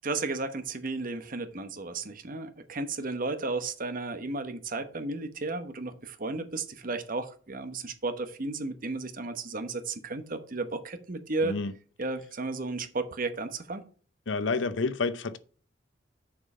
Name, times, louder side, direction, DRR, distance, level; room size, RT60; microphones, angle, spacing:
voice 1, 0.0-11.6 12.0-13.8, right 3 dB, 45° right, 1.0 m, -33 dB
voice 2, 14.3-15.4, left 4 dB, 75° left, 0.7 m, -29 dB
6.9 x 5.4 x 5.4 m
head